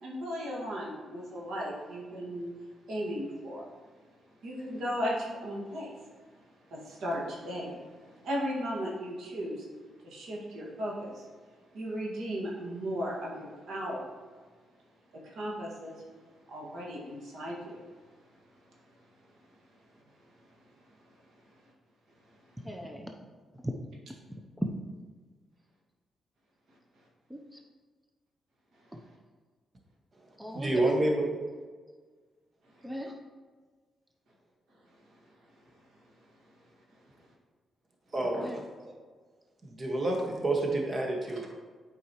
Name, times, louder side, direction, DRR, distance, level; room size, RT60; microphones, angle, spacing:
voice 1, 0.0-2.5 2.9-3.6 4.4-5.9 6.7-9.7 10.0-11.3 11.7-14.1 15.2-16.0 16.5-17.8, equal, 75° right, -3 dB, 1.7 m, -36 dB
voice 2, 22.6-23.2 23.5-23.9 24.3-24.7 27.3-27.6 28.9-29.0 30.4-31.0 32.8-33.2 38.4-38.6, equal, 10° right, 3 dB, 0.6 m, -38 dB
voice 3, 30.1-31.2 38.1-38.9 39.6-41.5, right 2 dB, 40° right, 0 dB, 1.4 m, -29 dB
8.2 x 4.7 x 3.0 m, 1.5 s
cardioid pair, 85°, 0 cm